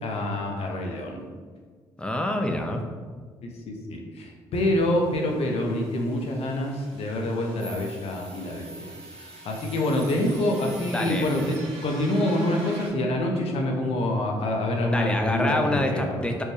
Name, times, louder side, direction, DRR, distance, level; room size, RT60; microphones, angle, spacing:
voice 1, 0.0-1.2 3.4-8.9 9.2-16.3, left 1 dB, 60° left, 1 dB, 0.7 m, -26 dB
voice 2, 2.0-2.8 10.9-11.3 14.9-16.4, left 1 dB, 10° left, 3 dB, 0.5 m, -26 dB
sound 1, 4.6-12.9, right 2 dB, 70° right, 0.9 m, -44 dB
4.5 x 2.2 x 3.1 m, 1.6 s
supercardioid pair, 60°, 11 cm